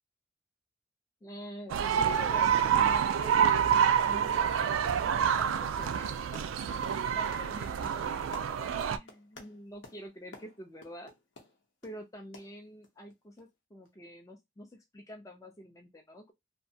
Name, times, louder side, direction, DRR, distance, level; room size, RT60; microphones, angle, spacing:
voice 1, 1.2-3.8 4.0-4.6 5.2-6.2 7.1-11.1 11.8-16.3, equal, 15° left, 0.4 m, -47 dB
sound 1, 1.7-9.0, right 8 dB, 90° right, 0.3 m, -27 dB
sound 2, 3.3-3.5 3.8-4.0 4.3-4.6 4.8-12.0 12.3-13.1 13.4-13.5 13.8-13.9, left 3 dB, 75° left, 0.8 m, -53 dB
2.6 x 2.1 x 2.7 m
head